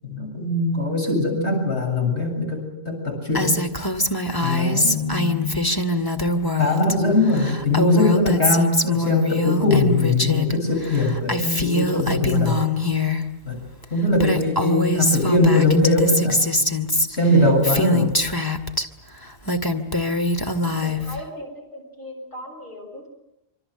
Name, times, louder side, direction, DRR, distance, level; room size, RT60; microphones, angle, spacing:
voice 1, 0.0-3.6 4.4-5.6 6.6-12.6 13.4-13.6 13.9-16.4 17.1-18.1, left 2 dB, 90° left, 1 dB, 8.2 m, -21 dB
Female speech woman speaking, 3.3-6.9 7.2-10.5 10.8-13.2 13.8-13.9 14.1-18.8 19.3-21.2, left 1 dB, 20° left, 2.2 m, -23 dB
voice 2, 20.6-23.1, equal, 50° left, 2 dB, 7.4 m, -38 dB
26.5 x 26.5 x 7.9 m, 0.85 s
omnidirectional pair, 1.1 m